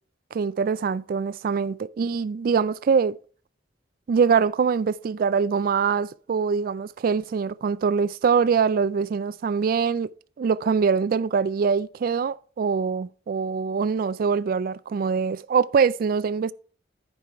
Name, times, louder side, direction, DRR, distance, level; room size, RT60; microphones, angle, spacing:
voice 1, 0.3-3.2 4.1-10.1 10.4-16.5, right 6 dB, 50° right, 0.3 m, -23 dB
10.5 x 5.4 x 4.5 m
head